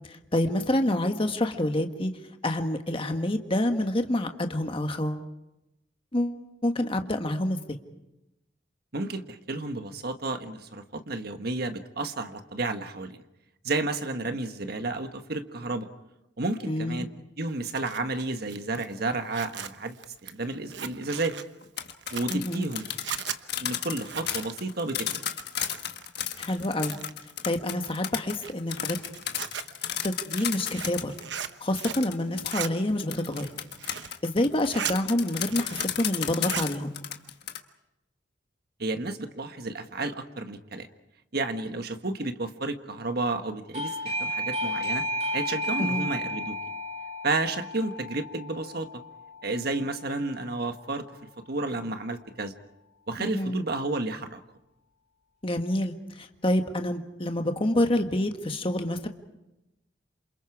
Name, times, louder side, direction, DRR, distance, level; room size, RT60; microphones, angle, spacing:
voice 1, 0.1-2.1 2.4-5.2 6.1-7.8 16.7-17.1 22.3-22.7 26.4-26.9 27.4-29.0 30.0-31.1 31.6-33.5 34.2-36.9 45.8-46.1 53.2-53.6 55.4-59.1, left 1 dB, 30° left, 5 dB, 1.5 m, -27 dB
voice 2, 8.9-13.2 13.6-15.9 16.4-17.1 17.4-20.0 20.2-21.4 22.1-22.9 23.6-25.1 38.8-40.9 41.3-45.0 45.3-46.6 47.2-48.9 49.4-51.1 51.5-52.5 53.1-54.4, right 2 dB, 60° right, 7 dB, 1.4 m, -31 dB
Zipper (clothing), 17.5-26.1 26.3-27.3 27.8-32.1 32.3-32.7 33.2-34.2 34.5-35.0 35.3-36.0 36.3-36.7, right 8 dB, 75° right, 1.1 m, -38 dB
sound 1, 21.6-31.2 31.8-37.6, left 10 dB, 65° left, 1.5 m, -33 dB
Doorbell, 43.7-50.2, equal, 35° right, 3.5 m, -33 dB
28.5 x 27.5 x 4.8 m, 0.93 s
head